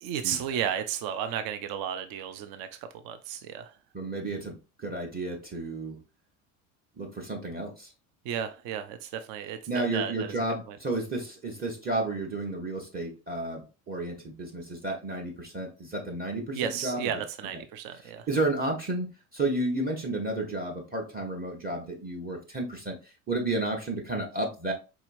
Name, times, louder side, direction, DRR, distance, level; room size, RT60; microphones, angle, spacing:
voice 1, 0.0-2.7 3.0-3.7 8.2-10.3 10.7-10.8 16.5-18.3, right 9 dB, 60° right, 0.6 m, -33 dB
voice 2, 3.9-6.0 7.0-7.9 9.7-17.2 17.9-24.7, right 2 dB, 20° right, 1.0 m, -32 dB
4.7 x 2.8 x 2.6 m
hypercardioid pair, 80°, 41 cm